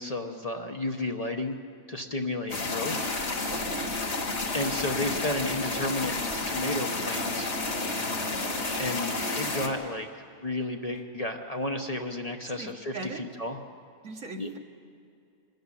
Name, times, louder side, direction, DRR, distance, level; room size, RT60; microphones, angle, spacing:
voice 1, 0.0-1.6 1.9-3.1 4.5-6.2 6.5-7.5 8.8-10.1 10.4-13.6 14.4-14.5, left 2 dB, 30° left, 3 dB, 1.0 m, -32 dB
sound 1, 2.5-9.7, left 2 dB, 50° left, 2.1 m, -31 dB
voice 2, 3.5-3.9 12.4-13.2 14.0-14.6, right 3 dB, 70° right, 3 dB, 1.9 m, -40 dB
24.5 x 13.5 x 9.8 m, 2.4 s
omnidirectional pair, 1.4 m